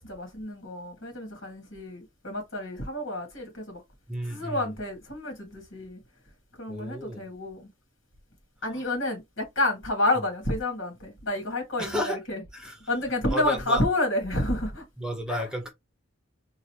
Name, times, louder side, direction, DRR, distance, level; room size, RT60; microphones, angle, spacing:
voice 1, 0.0-3.8 4.3-6.0 6.6-7.7 8.6-12.4 12.9-14.8 15.3-15.5, left 1 dB, 70° left, 2.1 m, -29 dB
voice 2, 4.1-4.7 6.7-7.3 8.7-8.8 11.8-12.2 12.5-12.9 13.3-13.8 15.0-15.7, left 1 dB, 5° right, 1.0 m, -32 dB
3.8 x 2.6 x 3.0 m
head